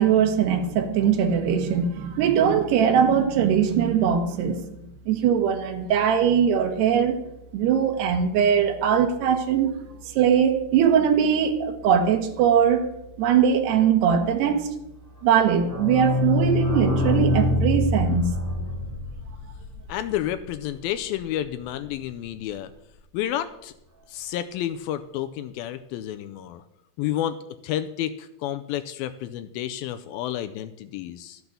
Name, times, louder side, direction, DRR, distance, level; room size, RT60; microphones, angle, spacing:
voice 1, 0.0-4.6 5.1-7.2 7.5-9.7 10.1-12.9 13.2-14.7 15.2-18.3, right 8 dB, 80° right, 4 dB, 3.2 m, -21 dB
sound 1, 15.3-20.9 21.2-21.3 21.5-21.6 21.8-21.9, left 2 dB, 5° right, 2.7 m, -25 dB
voice 2, 19.9-22.7 23.1-23.7 24.1-26.6 27.0-27.4 27.6-31.4, left 12 dB, 85° left, 10 dB, 2.2 m, -30 dB
12.5 x 7.9 x 6.9 m, 0.84 s
omnidirectional pair, 4.7 m